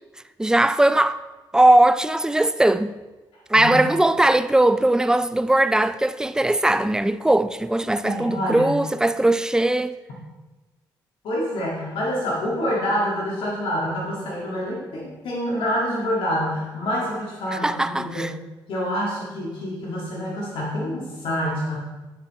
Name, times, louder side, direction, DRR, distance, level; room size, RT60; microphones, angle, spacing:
voice 1, 0.4-1.2 1.5-3.0 3.5-9.9 17.5-18.3, right 1 dB, 10° right, 0.4 m, -19 dB
voice 2, 8.0-8.7 11.2-18.2 18.7-21.8, equal, 80° left, 2.0 m, -27 dB
10.5 x 7.2 x 3.2 m
cardioid pair, 90°, 9 cm